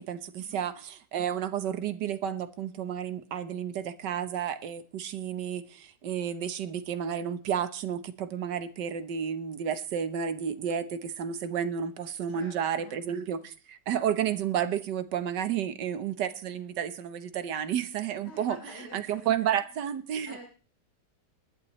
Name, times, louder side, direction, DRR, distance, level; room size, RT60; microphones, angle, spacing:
voice 1, 0.0-18.6 18.9-20.4, right 8 dB, 85° right, 1.6 m, -31 dB
voice 2, 12.3-13.0 18.2-19.3 20.3-20.4, left 1 dB, 75° left, 3.9 m, -47 dB
20.0 x 11.5 x 3.1 m
omnidirectional pair, 1.8 m